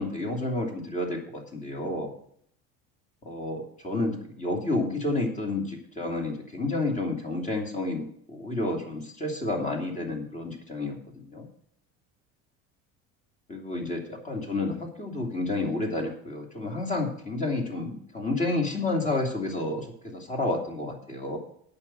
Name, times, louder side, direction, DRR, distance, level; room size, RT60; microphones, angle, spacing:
voice 1, 0.0-2.1 3.2-11.5 13.5-21.4, left 2 dB, 25° left, 1 dB, 2.8 m, -30 dB
8.8 x 6.1 x 7.6 m, 0.65 s
cardioid pair, 120°, 31 cm